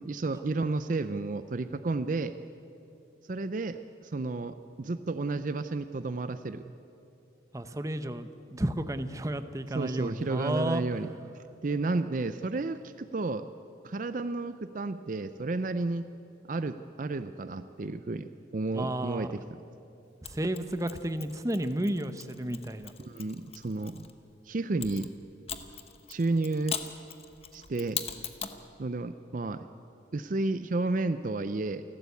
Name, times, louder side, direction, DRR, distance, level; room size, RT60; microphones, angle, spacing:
voice 1, 0.0-2.3 3.3-6.6 9.7-11.1 11.3-13.5 13.8-16.0 16.5-19.4 23.0-24.1 24.4-25.1 26.1-26.8 27.5-28.0 28.8-29.7 30.1-31.8, right 3 dB, 45° right, 11 dB, 0.5 m, -32 dB
voice 2, 7.5-10.8 18.7-19.3 20.2-22.9, right 1 dB, 15° right, 10 dB, 0.7 m, -32 dB
Mechanisms, 20.2-24.1 24.8-28.6, left 8 dB, 35° left, 1.0 m, -41 dB
28.5 x 12.5 x 8.3 m, 2.8 s
head